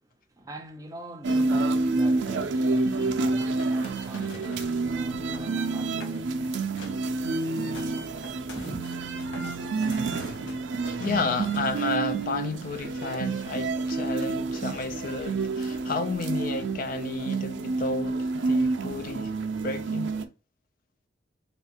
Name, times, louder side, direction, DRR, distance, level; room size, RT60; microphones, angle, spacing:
voice 1, 0.0-8.8, right 1 dB, 20° right, 0.5 m, -43 dB
sound 1, 1.2-20.2, right 3 dB, 80° right, 0.4 m, -28 dB
sound 2, 2.9-4.8 5.1-5.6 5.9-6.2 6.5-7.1 7.4-12.1, left 2 dB, 85° left, 0.8 m, -46 dB
voice 2, 11.0-19.3 19.6-20.1, left 3 dB, 50° left, 0.3 m, -32 dB
3.4 x 2.4 x 2.7 m
head